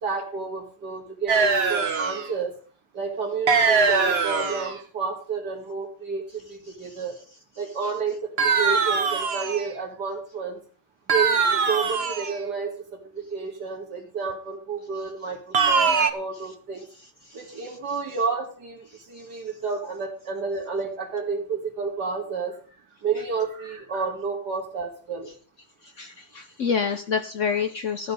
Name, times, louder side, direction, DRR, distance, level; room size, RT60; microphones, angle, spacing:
voice 1, 0.0-2.5 2.9-7.2 7.6-10.6 11.1-16.8 17.3-25.3, right 5 dB, 85° right, -1 dB, 2.9 m, -31 dB
sound 1, 1.3-2.3 3.5-4.8 8.4-9.7 11.1-12.4 15.5-16.1, right 5 dB, 40° right, 1.3 m, -22 dB
voice 2, 17.2-17.6 18.9-19.0 25.8-28.1, left 6 dB, 55° left, 8 dB, 1.0 m, -28 dB
13.0 x 9.4 x 5.4 m, 0.41 s
omnidirectional pair, 1.7 m